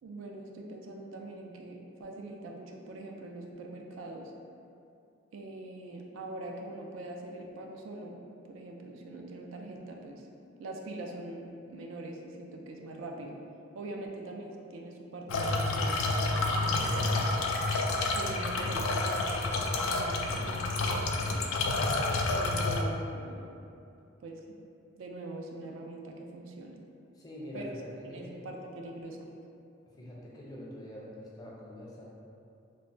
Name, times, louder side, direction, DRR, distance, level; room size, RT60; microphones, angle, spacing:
voice 1, 0.0-4.3 5.3-8.2 8.5-10.3 10.6-13.4 13.7-17.4 18.1-21.4 22.3-23.4 24.2-24.4 25.0-26.8 27.5-29.3, right 2 dB, 75° right, 1 dB, 0.3 m, -43 dB
sound 1, 15.3-22.8, left 2 dB, 90° left, 0.3 m, -29 dB
voice 2, 27.2-27.9 28.1-28.4 30.0-32.0, equal, 20° left, -5 dB, 0.4 m, -44 dB
3.2 x 2.1 x 2.6 m, 2.6 s
head